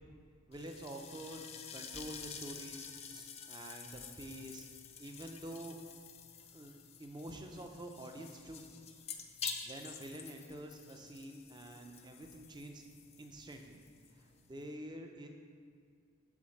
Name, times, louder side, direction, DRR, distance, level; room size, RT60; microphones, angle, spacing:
sound 1, 0.5-14.8, left 6 dB, 30° left, 0.4 m, -49 dB
voice 1, 0.5-1.4 1.7-4.7 5.0-5.8 6.5-6.7 7.0-8.7 9.5-12.8 13.2-13.8 14.2-15.3, right 1 dB, 20° right, 3 dB, 0.6 m, -47 dB
7.2 x 3.9 x 6.5 m, 2.2 s
head